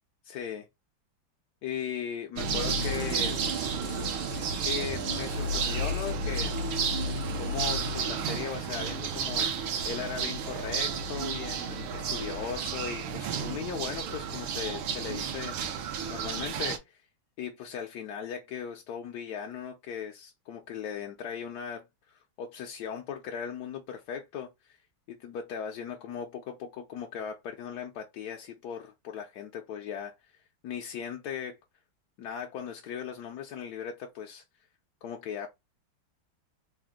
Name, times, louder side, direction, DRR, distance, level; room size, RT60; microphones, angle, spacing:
voice 1, 0.2-0.7 1.6-3.4 4.6-6.6 7.4-17.0 17.4-24.8 25.1-30.1 30.6-31.6 32.2-34.4 35.0-35.5, left 7 dB, 70° left, 1.0 m, -38 dB
sound 1, 2.4-16.8, right 4 dB, 80° right, 1.5 m, -32 dB
sound 2, 2.5-8.7 9.0-9.1 9.3-9.4 9.8-9.9 10.2-10.3, left 2 dB, 20° left, 0.3 m, -49 dB
3.8 x 2.5 x 3.7 m
omnidirectional pair, 2.2 m